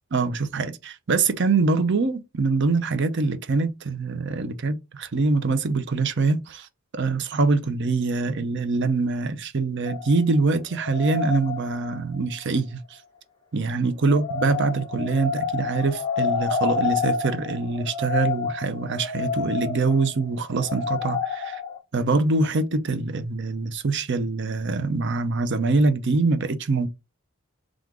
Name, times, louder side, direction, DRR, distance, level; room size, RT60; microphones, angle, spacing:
voice 1, 0.1-6.7 7.0-12.8 13.5-21.6 21.9-26.9, right 3 dB, 55° right, 0.6 m, -24 dB
sound 1, 9.9-12.2 14.0-21.8, left 5 dB, 20° left, 0.9 m, -29 dB
3.6 x 2.5 x 4.6 m
head